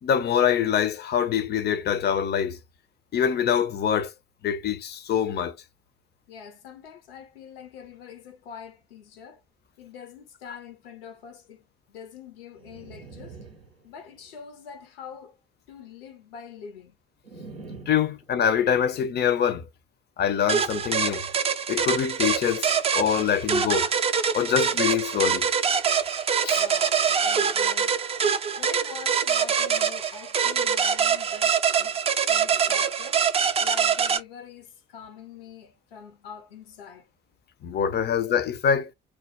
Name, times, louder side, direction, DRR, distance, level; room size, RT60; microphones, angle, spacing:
voice 1, 0.0-2.6 3.1-4.1 4.4-5.6 17.9-19.7 20.2-21.3 21.7-23.9 24.3-25.5 26.4-26.6 37.6-38.9, left 8 dB, 35° left, 0.5 m, -24 dB
voice 2, 6.3-9.4 9.8-13.4 13.8-15.4 15.7-17.0 26.6-28.0 28.6-32.0 32.3-33.3 33.6-37.1, left 7 dB, 75° left, 0.7 m, -44 dB
sound 1, 12.5-14.4 17.2-18.8, right 3 dB, 90° right, 0.5 m, -45 dB
sound 2, 20.5-34.2, right 7 dB, 20° right, 0.3 m, -24 dB
2.2 x 2.0 x 2.7 m
figure-of-eight pair, 45°, 29 cm